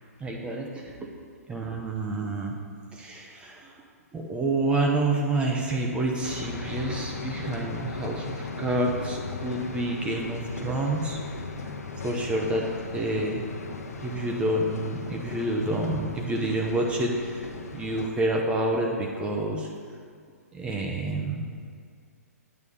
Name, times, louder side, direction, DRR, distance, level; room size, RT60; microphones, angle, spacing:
voice 1, 0.2-1.1 1.5-2.5 2.9-3.7 4.1-11.2 12.0-12.7 12.9-13.4 14.0-19.7 20.5-21.5, right 2 dB, 10° right, 0 dB, 0.7 m, -28 dB
sound 1, 6.2-18.1, left 3 dB, 70° left, 0.9 m, -37 dB
8.8 x 3.5 x 6.8 m, 2.1 s
figure-of-eight pair, 125°, 9 cm